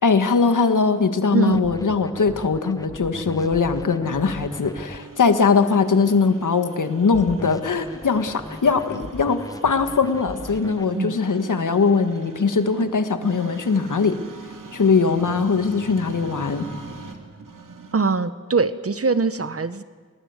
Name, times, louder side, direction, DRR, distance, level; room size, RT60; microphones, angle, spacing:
voice 1, 0.0-14.2 14.7-16.7, left 5 dB, 75° left, 9 dB, 1.7 m, -21 dB
sound 1, 1.5-5.0 7.1-10.9, left 1 dB, 10° left, 1.0 m, -38 dB
sound 2, 3.2-18.2, right 3 dB, 85° right, 2.7 m, -42 dB
voice 2, 17.9-19.8, right 4 dB, 50° right, 13 dB, 1.1 m, -22 dB
28.0 x 20.0 x 8.2 m, 1.5 s
wide cardioid pair, 80°, 31 cm